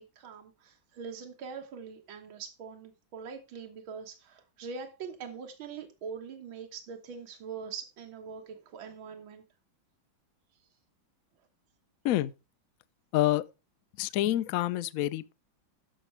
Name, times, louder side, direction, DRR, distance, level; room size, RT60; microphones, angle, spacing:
voice 1, 0.0-9.4, right 6 dB, 75° right, 2.1 m, -43 dB
voice 2, 13.1-13.4 14.0-15.3, left 14 dB, 85° left, 0.7 m, -27 dB
12.0 x 6.5 x 4.4 m
omnidirectional pair, 2.2 m